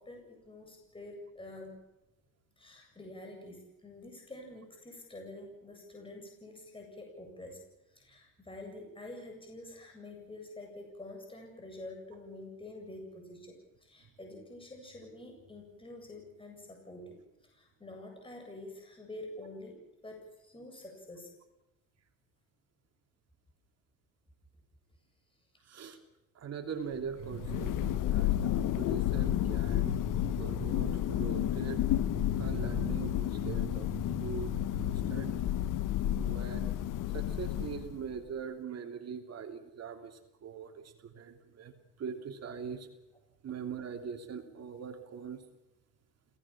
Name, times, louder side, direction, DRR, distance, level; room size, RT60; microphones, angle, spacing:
voice 1, 0.0-1.8 2.6-7.6 7.9-21.3, left 2 dB, 15° left, 2 dB, 7.9 m, -47 dB
voice 2, 25.6-26.0 26.3-35.7 36.1-36.7 37.1-41.7 42.0-42.9 43.4-45.4, right 7 dB, 50° right, 5 dB, 3.1 m, -41 dB
Thunder, 27.1-38.1, left 13 dB, 65° left, 1.2 m, -31 dB
29.0 x 18.0 x 7.4 m, 0.99 s
cardioid pair, 105°, 33 cm